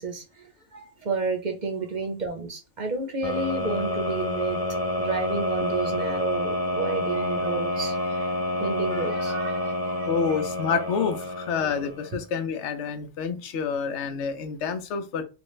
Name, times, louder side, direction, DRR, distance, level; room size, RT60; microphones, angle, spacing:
voice 1, 0.0-4.6 5.0-10.4, right 4 dB, 50° right, 3 dB, 0.7 m, -31 dB
sound 1, 3.2-12.1, left 1 dB, 35° left, 0.4 m, -28 dB
voice 2, 10.1-15.2, left 6 dB, 85° left, 8 dB, 0.9 m, -28 dB
3.4 x 2.2 x 3.0 m, 0.31 s
omnidirectional pair, 1.2 m